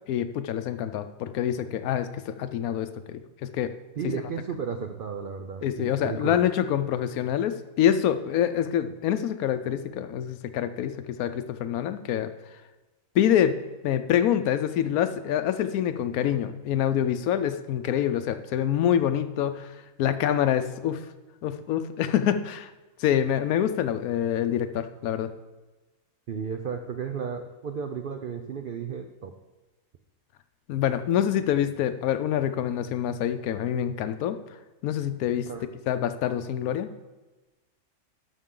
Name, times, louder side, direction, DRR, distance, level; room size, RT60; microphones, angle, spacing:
voice 1, 0.1-3.7 4.0-4.1 5.6-12.3 13.1-13.6 13.8-19.7 20.0-21.0 21.4-22.7 23.0-25.3 30.7-34.4 34.8-35.5 35.9-36.9, left 10 dB, 80° left, 11 dB, 1.0 m, -26 dB
voice 2, 4.0-6.4 26.3-29.3 35.5-35.7, right 6 dB, 70° right, 6 dB, 0.5 m, -33 dB
12.5 x 5.7 x 3.8 m, 1.2 s
omnidirectional pair, 1.6 m